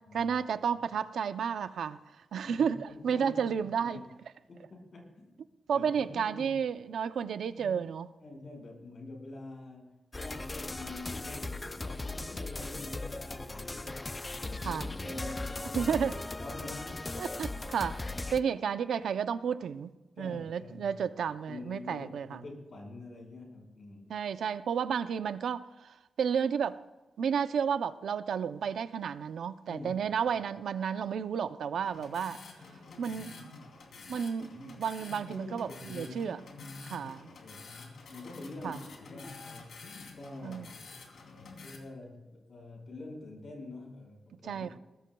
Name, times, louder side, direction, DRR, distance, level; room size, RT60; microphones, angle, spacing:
voice 1, 0.1-2.0 2.3-4.0 5.7-8.1 14.6-14.9 15.7-16.1 17.2-18.0 18.3-19.9 20.2-22.4 24.1-26.8 27.2-32.4 33.0-33.5 34.1-36.4 36.9-37.3 38.6-38.8 40.4-40.7 44.4-44.8, right 7 dB, 85° right, 12 dB, 0.6 m, -32 dB
voice 2, 2.4-3.4 3.8-4.0 4.5-5.5 5.7-6.5 7.5-7.8 8.2-14.1 14.4-16.0 16.4-17.0 20.2-21.0 21.5-24.1 29.7-29.9 33.1-33.2 35.0-39.7 40.2-40.8 41.6-44.8, left 2 dB, 50° left, 1 dB, 5.3 m, -46 dB
sound 1, 10.1-18.4, left 2 dB, 20° left, 0.5 m, -38 dB
sound 2, 31.8-41.8, left 4 dB, 75° left, 3.1 m, -49 dB
22.0 x 19.0 x 2.3 m, 1.1 s
wide cardioid pair, 150°, 0 cm